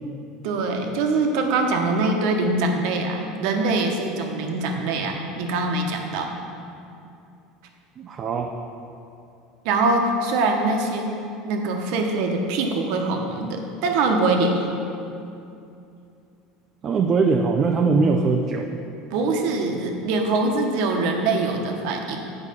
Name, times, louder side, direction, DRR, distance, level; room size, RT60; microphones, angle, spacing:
voice 1, 0.4-6.3 9.6-11.1 11.4-14.7 19.1-22.2, right 3 dB, 65° right, 2 dB, 1.1 m, -23 dB
voice 2, 8.0-8.5 16.8-18.7, right 4 dB, 35° right, 3 dB, 0.5 m, -21 dB
8.6 x 4.9 x 6.7 m, 2.6 s
supercardioid pair, 140°, 0 cm